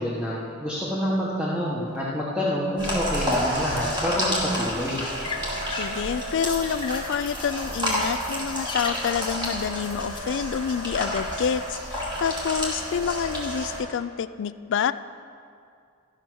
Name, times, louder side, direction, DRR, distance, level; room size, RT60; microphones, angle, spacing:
voice 1, 0.0-5.0, equal, 5° right, -7 dB, 1.1 m, -27 dB
sound 1, 2.8-13.8, equal, 25° right, 2.3 m, -30 dB
sound 2, 4.6-10.2, left 4 dB, 25° left, 0.7 m, -40 dB
voice 2, 5.8-14.9, left 7 dB, 60° left, 14 dB, 0.3 m, -28 dB
13.5 x 5.7 x 6.1 m, 2.3 s
head